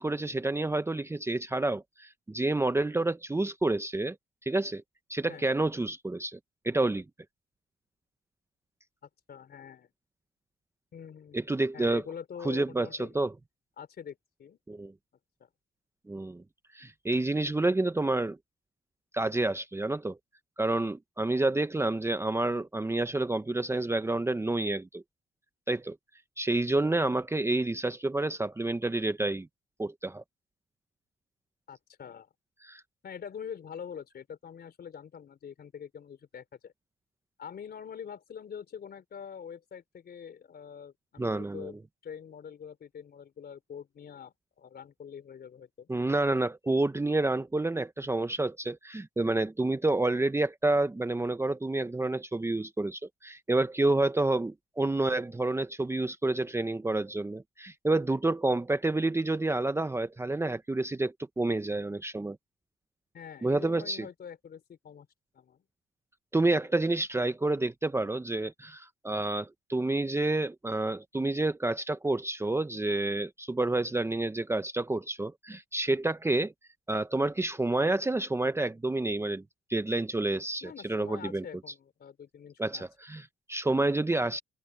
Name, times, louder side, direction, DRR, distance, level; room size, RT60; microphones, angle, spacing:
voice 1, 0.0-4.2 4.5-4.8 5.1-6.4 6.6-7.0 11.3-12.0 12.4-13.3 14.7-14.9 16.1-16.4 16.7-18.4 19.1-20.2 20.6-25.0 25.7-26.0 26.4-29.5 29.8-30.2 32.7-32.8 41.2-41.7 45.9-62.4 63.4-64.1 66.3-76.5 76.9-79.4 79.7-81.4 82.6-84.4, right 2 dB, 15° right, 0.8 m, -29 dB
voice 2, 9.3-9.9 10.9-13.1 13.8-14.6 15.4-15.5 31.7-32.3 33.0-36.7 37.4-41.8 42.0-45.9 63.1-65.1 65.3-65.6 66.5-66.6 80.6-82.9, left 7 dB, 55° left, 3.6 m, -45 dB
open air
cardioid pair, 90°, 20 cm